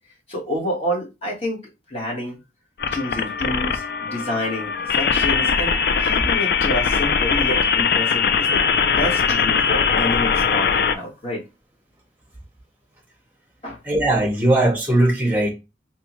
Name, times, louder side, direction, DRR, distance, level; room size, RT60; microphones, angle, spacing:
voice 1, 0.3-1.6 1.9-2.4 2.9-8.6 9.0-11.4 13.6-13.8, left 1 dB, 35° left, 1.3 m, -28 dB
sound 1, 2.8-10.9, left 6 dB, 55° left, 0.3 m, -21 dB
voice 2, 13.8-15.5, right 1 dB, 10° right, 0.9 m, -19 dB
3.3 x 2.9 x 3.0 m
head